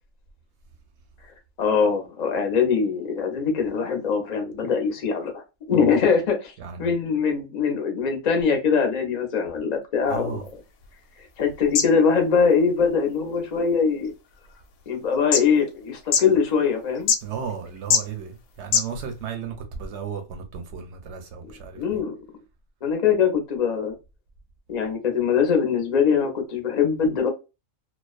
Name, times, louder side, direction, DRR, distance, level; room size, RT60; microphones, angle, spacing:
voice 1, 1.6-5.3 5.7-6.5 6.8-10.4 11.4-14.1 14.9-17.1 21.8-22.2 22.8-23.9 24.7-27.3, left 6 dB, 45° left, 0.6 m, -22 dB
voice 2, 6.6-6.9 10.1-10.5 17.2-22.0, right 6 dB, 65° right, 0.8 m, -34 dB
sound 1, 10.1-19.3, left 6 dB, 90° left, 1.0 m, -30 dB
2.4 x 2.2 x 2.4 m
omnidirectional pair, 1.4 m